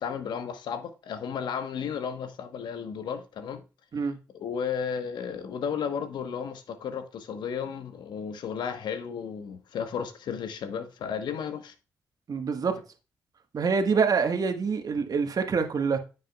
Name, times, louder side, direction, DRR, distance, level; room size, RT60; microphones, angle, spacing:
voice 1, 0.0-3.6 4.3-11.7, left 7 dB, 70° left, 1.2 m, -33 dB
voice 2, 12.3-12.8 13.5-16.0, right 5 dB, 50° right, 1.5 m, -26 dB
9.4 x 7.5 x 2.4 m
hypercardioid pair, 45°, 8 cm